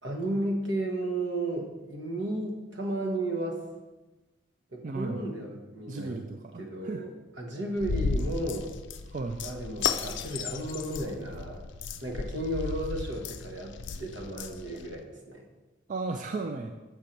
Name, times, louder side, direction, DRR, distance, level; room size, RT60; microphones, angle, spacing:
voice 1, 0.0-3.6 4.7-6.2 6.6-7.1 7.4-8.8 9.4-11.7 12.0-15.5, right 1 dB, 75° right, 1 dB, 1.3 m, -33 dB
voice 2, 4.8-5.2 5.9-7.0 9.1-9.4 15.9-16.7, right 3 dB, 40° right, 5 dB, 0.3 m, -35 dB
sound 1, 7.8-15.0, left 5 dB, 75° left, 0.4 m, -34 dB
6.9 x 4.4 x 5.2 m, 1.1 s
head